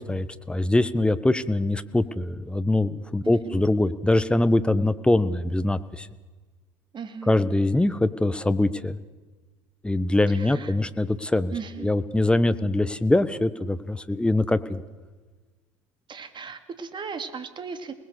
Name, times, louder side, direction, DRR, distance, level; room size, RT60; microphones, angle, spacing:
voice 1, 0.1-6.1 7.3-9.0 9.8-11.5 11.8-14.8, left 2 dB, 5° left, 13 dB, 1.4 m, -23 dB
voice 2, 3.2-3.6 6.9-7.4 10.3-10.8 11.5-11.9 16.1-18.0, right 6 dB, 30° right, 8 dB, 3.0 m, -37 dB
29.0 x 20.0 x 6.8 m, 1.3 s
figure-of-eight pair, 70°, 16 cm